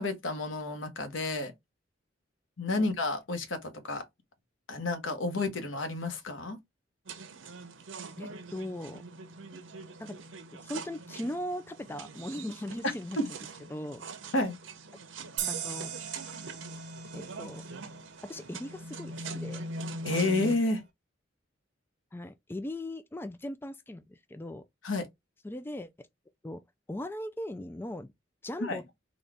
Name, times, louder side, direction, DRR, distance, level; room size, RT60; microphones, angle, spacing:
voice 1, 0.0-1.5 2.6-4.0 4.7-6.6 13.2-13.3 14.3-14.6 20.0-20.8 24.8-25.1 28.6-28.8, left 2 dB, 90° left, 1.0 m, -30 dB
sound 1, 7.1-20.6, right 2 dB, 85° right, 0.8 m, -42 dB
voice 2, 8.2-9.0 10.0-10.2 10.5-13.2 13.7-14.0 15.5-15.9 17.1-17.6 18.2-19.6 22.1-24.6 25.4-26.1 26.4-26.6 26.9-28.1 28.4-28.8, left 1 dB, 10° left, 0.3 m, -39 dB
sound 2, 15.4-18.7, right 10 dB, 65° right, 1.1 m, -39 dB
4.0 x 2.3 x 3.4 m
head